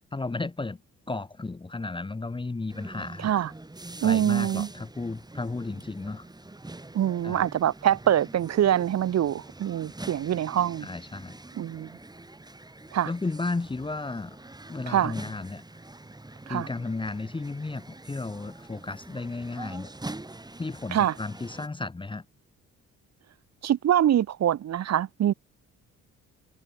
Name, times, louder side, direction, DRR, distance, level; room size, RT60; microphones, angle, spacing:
voice 1, 0.1-0.8 1.1-3.3 4.0-6.3 7.2-7.5 10.8-11.4 13.0-14.4 14.7-15.6 16.5-19.9 20.6-22.2, left 3 dB, 15° left, 1.1 m, -33 dB
sound 1, 2.7-21.7, right 2 dB, 15° right, 6.0 m, -44 dB
voice 2, 4.0-4.7 6.9-10.9 11.6-11.9 12.9-13.1 14.9-15.1 16.5-16.7 20.9-21.1 23.6-25.3, right 11 dB, 60° right, 1.2 m, -24 dB
cardioid pair, 90°, 30 cm